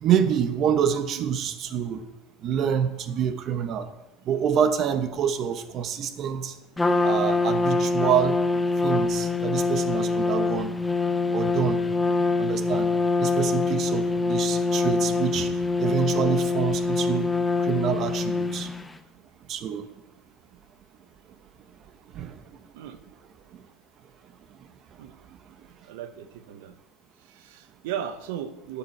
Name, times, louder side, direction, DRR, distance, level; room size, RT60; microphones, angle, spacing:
voice 1, 0.0-2.0 2.4-3.8 4.3-6.5 7.0-8.3 8.8-10.7 11.3-11.8 12.4-12.9 13.2-15.5 15.8-17.3 17.7-18.7 19.5-19.8 22.2-22.3, right 8 dB, 45° right, 9 dB, 1.0 m, -26 dB
Trumpet, 6.8-18.9, left 3 dB, 10° left, 0.5 m, -24 dB
voice 2, 25.8-26.7 27.2-28.8, right 9 dB, 80° right, 10 dB, 1.0 m, -37 dB
11.5 x 7.1 x 4.6 m, 0.96 s
supercardioid pair, 130°, 0 cm